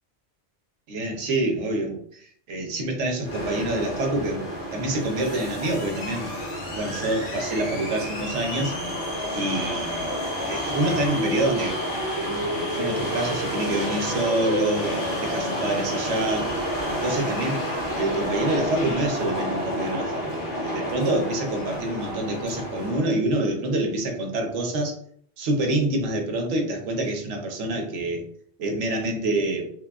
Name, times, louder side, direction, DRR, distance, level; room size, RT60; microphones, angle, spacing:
voice 1, 0.9-4.5 4.7-6.4 6.7-8.7 9.3-10.1 10.5-11.8 12.2-16.5 16.9-17.6 17.9-24.9 25.4-28.2 28.6-29.7, right 1 dB, 85° right, 2 dB, 1.0 m, -27 dB
sound 1, 3.2-23.1, equal, 55° left, 0.8 m, -29 dB
3.1 x 2.2 x 2.3 m, 0.63 s
omnidirectional pair, 1.2 m